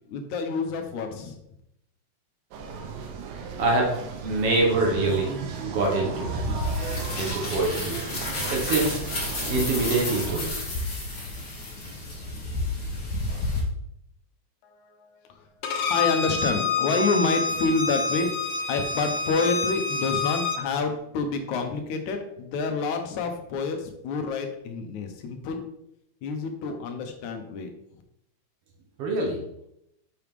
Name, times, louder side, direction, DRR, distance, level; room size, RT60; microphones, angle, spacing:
voice 1, 0.1-1.4 14.6-15.6 15.9-18.3 18.7-25.7 26.2-27.7, left 4 dB, 80° left, 6 dB, 2.3 m, -28 dB
sound 1, 2.5-10.4, right 5 dB, 85° right, 2.2 m, -35 dB
voice 2, 3.6-4.0 4.2-5.3 5.6-6.3 7.2-8.0 8.5-9.0 9.5-10.5 29.0-29.4, right 2 dB, 60° right, 0 dB, 1.9 m, -24 dB
sound 2, 6.2-13.6, left 2 dB, 40° left, 2.2 m, -31 dB
Bowed string instrument, 15.6-20.6, left 3 dB, 65° left, 1.6 m, -27 dB
6.4 x 5.7 x 3.6 m, 0.79 s
omnidirectional pair, 3.3 m